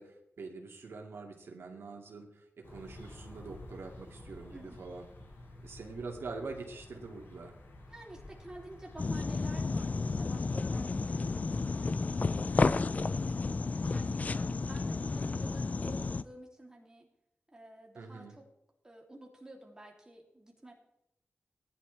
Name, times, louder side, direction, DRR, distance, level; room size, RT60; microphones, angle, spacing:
voice 1, 0.0-5.1 5.6-7.5 17.9-18.3, right 3 dB, 85° right, 1 dB, 2.3 m, -44 dB
sound 1, 2.6-13.5, left 1 dB, 90° left, 6.6 m, -51 dB
voice 2, 4.5-4.9 7.9-17.1 17.5-18.5 18.8-20.7, right 1 dB, 15° right, -1 dB, 3.1 m, -51 dB
sound 2, 9.0-16.2, left 3 dB, 40° left, 0.5 m, -32 dB
19.0 x 11.0 x 3.4 m, 0.82 s
wide cardioid pair, 130°, 4 cm